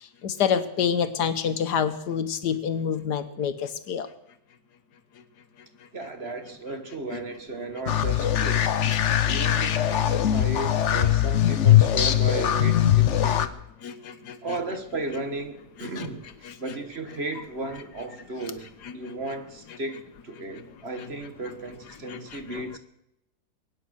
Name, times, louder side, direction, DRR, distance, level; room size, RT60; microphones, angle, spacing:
voice 1, 0.2-4.1 8.9-9.0 9.3-9.4 13.8-14.4 15.8-16.1 16.4-16.5 18.8-18.9 22.1-22.4, left 7 dB, 80° left, 1.6 m, -27 dB
voice 2, 5.9-8.7 9.1-13.5 14.4-16.2 16.6-22.8, right 2 dB, 40° right, 1.6 m, -35 dB
sound 1, 7.9-13.5, left 11 dB, 55° left, 1.0 m, -21 dB
22.5 x 9.6 x 6.4 m
omnidirectional pair, 1.7 m